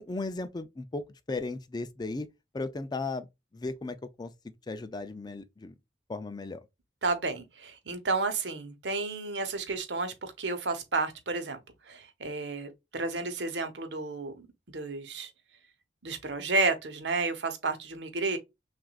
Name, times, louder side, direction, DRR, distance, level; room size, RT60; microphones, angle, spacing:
voice 1, 0.0-2.3 2.5-3.3 3.5-5.7 6.1-6.6, left 3 dB, 25° left, 0.4 m, -36 dB
voice 2, 7.0-11.6 11.9-14.5 14.7-15.3 16.0-18.4, right 3 dB, 85° right, 1.0 m, -31 dB
6.0 x 2.5 x 2.4 m
head